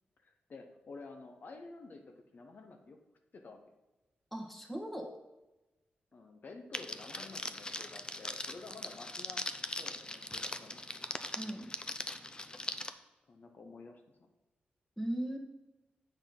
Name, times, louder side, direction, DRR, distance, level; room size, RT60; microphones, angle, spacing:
voice 1, 0.2-3.0 3.3-3.7 6.1-9.4 9.8-10.9 13.3-14.0, left 3 dB, 55° left, 4 dB, 0.9 m, -51 dB
voice 2, 4.3-5.2 11.3-11.7 15.0-15.4, right 1 dB, 5° left, 2 dB, 1.6 m, -38 dB
Crackle, 6.7-12.9, left 2 dB, 25° left, 0.6 m, -40 dB
7.2 x 5.7 x 5.3 m, 1.1 s
cardioid pair, 75°, 4 cm